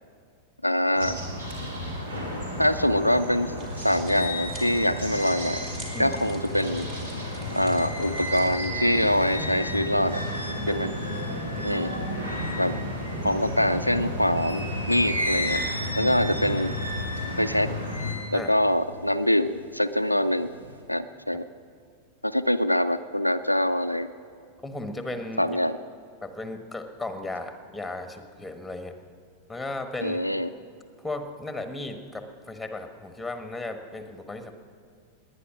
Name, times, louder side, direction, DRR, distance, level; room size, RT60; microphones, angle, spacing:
voice 1, 0.6-1.2 2.6-3.5 3.8-5.7 6.0-6.9 7.5-10.2 10.7-10.9 11.6-11.9 12.6-12.7 13.2-15.6 16.0-16.7 17.4-17.7 18.3-20.5 20.9-21.5 22.2-24.1 25.4-25.8 30.0-30.5, equal, 90° left, 9 dB, 0.4 m, -24 dB
sound 1, 0.9-18.1, left 1 dB, 70° right, 2.8 m, -33 dB
sound 2, 3.6-8.7, right 2 dB, 30° right, 3.2 m, -47 dB
sound 3, 3.6-13.8 14.3-19.8 20.2-20.8, equal, 85° right, 1.7 m, -36 dB
voice 2, 11.3-11.7 13.1-13.4 16.0-16.1 18.3-18.5 24.6-25.6 26.2-29.0 29.5-30.2 31.0-34.5, left 2 dB, 5° left, 7 dB, 1.3 m, -36 dB
20.0 x 9.8 x 6.2 m, 2.2 s
figure-of-eight pair, 90°, 0 cm